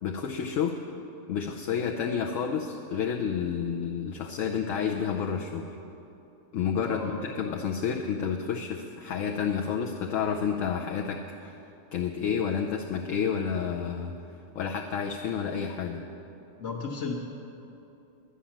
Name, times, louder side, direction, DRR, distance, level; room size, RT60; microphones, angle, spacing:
voice 1, 0.0-0.9 1.3-5.6 6.5-11.5 11.9-14.1 14.5-16.0, left 7 dB, 70° left, 1 dB, 1.1 m, -30 dB
voice 2, 6.8-7.2 16.6-17.1, left 4 dB, 55° left, -5 dB, 1.4 m, -34 dB
11.5 x 10.0 x 7.3 m, 2.9 s
omnidirectional pair, 1.4 m